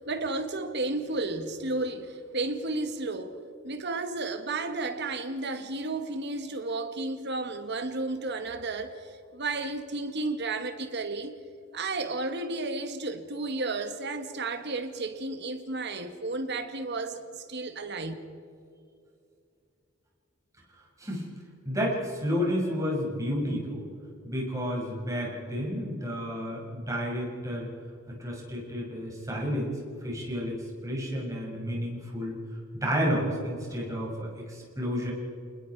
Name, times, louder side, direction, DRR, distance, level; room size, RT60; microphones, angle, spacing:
voice 1, 0.1-3.4 3.6-8.9 9.3-11.3 11.7-17.2 17.5-18.1, right 2 dB, 55° right, 1.8 m, -32 dB
voice 2, 21.0-21.3 21.6-23.8 24.2-27.7 28.2-29.7 30.0-30.6 30.8-32.3 32.7-35.1, equal, 15° right, 6.5 m, -31 dB
29.0 x 20.5 x 4.8 m
head